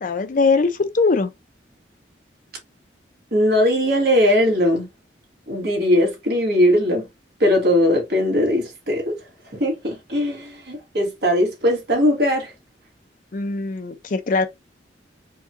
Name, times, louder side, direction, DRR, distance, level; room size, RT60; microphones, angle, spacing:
voice 1, 0.0-1.3 13.3-14.5, left 4 dB, 45° left, 0.5 m, -21 dB
voice 2, 3.3-4.9 5.5-7.1 7.4-9.2 9.5-12.5, left 1 dB, 60° right, 1.8 m, -19 dB
4.6 x 2.3 x 2.8 m
head